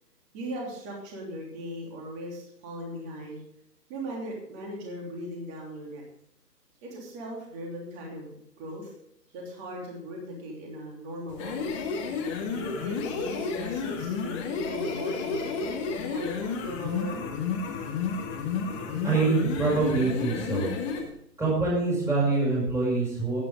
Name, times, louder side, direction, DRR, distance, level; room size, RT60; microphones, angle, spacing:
voice 1, 0.3-3.4 3.9-6.0 6.8-8.9 9.3-11.9 12.4-17.3, equal, 20° right, -1 dB, 3.1 m, -38 dB
sound 1, 11.3-21.1, left 5 dB, 20° left, 1.3 m, -31 dB
voice 2, 19.0-20.7 21.4-23.4, right 3 dB, 5° right, -5 dB, 5.1 m, -25 dB
13.5 x 10.0 x 3.7 m, 0.73 s
figure-of-eight pair, 145°, 49 cm